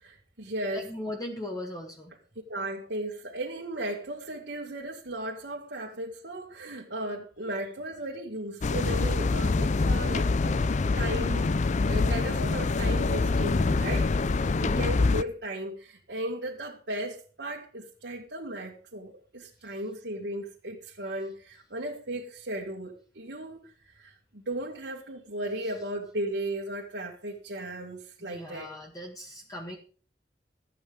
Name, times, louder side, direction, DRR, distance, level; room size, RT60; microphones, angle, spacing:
voice 1, 0.0-0.9 2.5-10.6 10.9-11.5 11.8-14.1 14.6-23.6 24.0-28.7, right 1 dB, 80° right, -3 dB, 2.1 m, -36 dB
voice 2, 0.7-2.1 14.5-14.9 25.6-25.7 28.2-29.8, left 1 dB, 20° left, 0 dB, 1.7 m, -39 dB
sound 1, 8.6-15.2, left 3 dB, 45° left, 0.4 m, -25 dB
13.5 x 8.8 x 5.2 m, 0.41 s
head